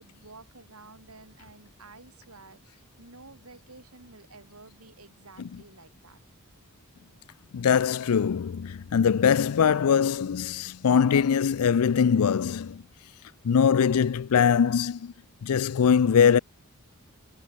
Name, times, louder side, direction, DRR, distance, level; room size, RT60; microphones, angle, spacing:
voice 1, 0.0-6.2, right 3 dB, 80° right, 4.7 m, -51 dB
voice 2, 7.5-12.8 13.4-15.1 15.4-16.4, left 7 dB, 85° left, 0.4 m, -22 dB
head